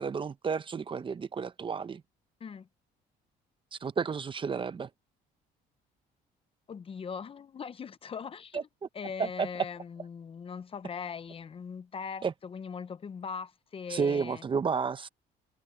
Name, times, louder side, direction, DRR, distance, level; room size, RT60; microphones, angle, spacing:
voice 1, 0.0-2.0 3.8-4.9 8.5-8.6 9.2-9.5 12.2-12.3 13.9-15.1, right 5 dB, 30° right, 0.9 m, -31 dB
voice 2, 6.7-8.6 8.9-14.4, left 6 dB, 35° left, 0.8 m, -40 dB
cardioid pair, 110°, 17 cm